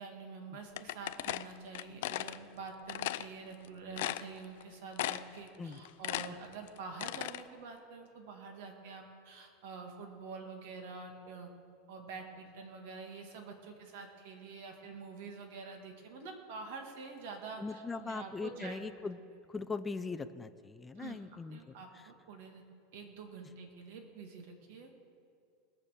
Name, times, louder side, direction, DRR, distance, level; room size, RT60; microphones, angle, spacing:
voice 1, 0.0-11.5 11.9-18.8 21.0-21.2 21.5-22.6 22.9-25.0, right 4 dB, 70° right, 3 dB, 2.2 m, -47 dB
sound 1, 0.8-2.4 2.9-3.3 3.6-3.7 4.0-4.6 5.0-5.4 5.7-7.4, left 15 dB, 75° left, 0.4 m, -36 dB
voice 2, 17.6-19.2 19.5-21.7, left 4 dB, 10° left, 10 dB, 0.5 m, -40 dB
20.5 x 7.2 x 6.7 m, 2.4 s
supercardioid pair, 145°, 0 cm